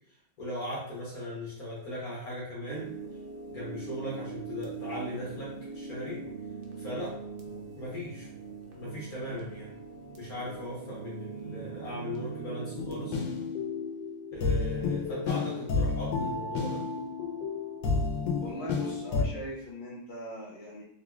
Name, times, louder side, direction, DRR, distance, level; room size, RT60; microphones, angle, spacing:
voice 1, 0.4-2.9 3.5-5.5 5.7-6.2 6.8-7.1 7.8-8.3 8.7-9.7 10.2-13.2 14.3-16.8, left 1 dB, 60° left, -5 dB, 1.4 m, -38 dB
sound 1, 2.7-13.2, right 5 dB, 80° right, 1.3 m, -41 dB
sound 2, 12.8-19.2, left 4 dB, 80° left, 1.3 m, -31 dB
voice 2, 18.4-20.8, equal, 35° left, -7 dB, 1.1 m, -40 dB
3.8 x 3.0 x 2.3 m, 0.67 s
omnidirectional pair, 1.9 m